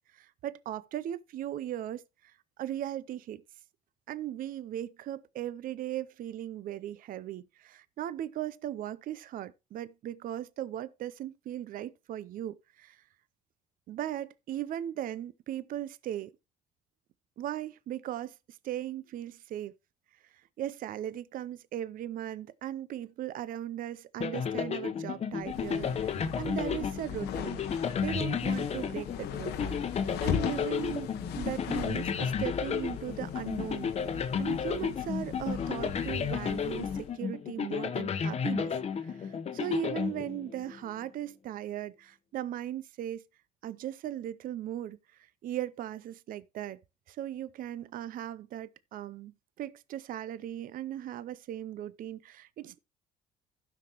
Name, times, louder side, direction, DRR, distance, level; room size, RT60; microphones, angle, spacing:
voice 1, 0.1-2.3 2.6-3.4 4.1-13.0 13.9-16.3 17.4-19.7 20.6-27.6 28.0-31.1 31.3-33.9 34.4-43.2 43.6-45.0 45.4-46.8 47.1-49.3 49.6-52.8, right 12 dB, 55° right, 0.5 m, -38 dB
sound 1, 24.2-40.8, left 7 dB, 40° left, 0.9 m, -33 dB
sound 2, 25.4-37.1, left 9 dB, 80° left, 1.0 m, -39 dB
16.0 x 6.0 x 2.9 m
cardioid pair, 110°, 17 cm